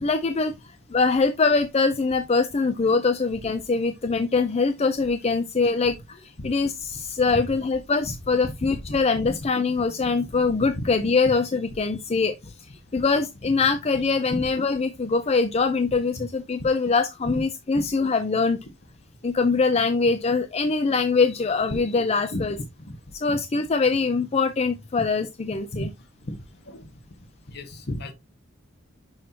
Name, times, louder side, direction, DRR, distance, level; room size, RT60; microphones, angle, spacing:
voice 1, 0.0-0.5 0.9-12.3 12.9-18.6 19.2-22.6 23.2-25.9, left 4 dB, 30° left, 0.5 m, -23 dB
voice 2, 27.5-28.1, left 1 dB, 55° left, 1.3 m, -32 dB
6.4 x 5.8 x 2.8 m
head